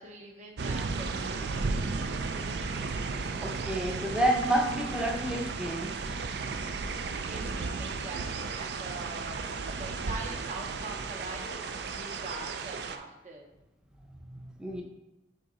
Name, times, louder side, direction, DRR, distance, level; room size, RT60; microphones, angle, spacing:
voice 1, 0.0-2.2 7.2-13.5, right 3 dB, 40° right, 0 dB, 0.8 m, -44 dB
sound 1, 0.6-13.0, right 4 dB, 60° right, 0.4 m, -34 dB
voice 2, 3.4-5.9 14.3-14.8, right 1 dB, 5° right, 1 dB, 0.6 m, -29 dB
6.6 x 3.6 x 4.2 m, 0.96 s
head